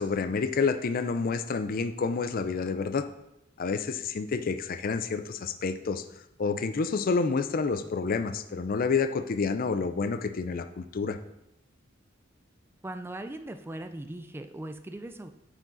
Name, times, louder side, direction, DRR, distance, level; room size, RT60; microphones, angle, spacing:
voice 1, 0.0-3.1 3.6-6.0 6.4-11.2, left 4 dB, 45° left, 9 dB, 0.5 m, -29 dB
voice 2, 12.8-15.3, right 1 dB, 10° right, 8 dB, 0.4 m, -39 dB
9.6 x 5.0 x 3.9 m, 0.84 s
head